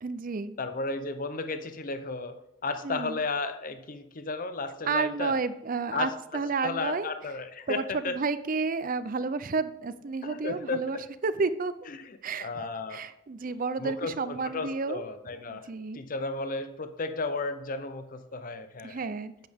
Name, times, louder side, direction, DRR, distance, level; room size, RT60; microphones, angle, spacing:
voice 1, 0.0-0.6 2.8-3.2 4.9-7.1 7.7-11.7 12.2-15.0 15.5-16.0 18.8-19.5, right 4 dB, 40° right, 14 dB, 0.5 m, -31 dB
voice 2, 0.6-2.3 2.6-5.4 5.9-6.1 6.6-8.2 10.2-10.8 12.4-13.0 13.8-15.7 15.9-19.0, left 3 dB, 40° left, 9 dB, 0.6 m, -33 dB
10.5 x 8.2 x 3.5 m, 0.87 s
head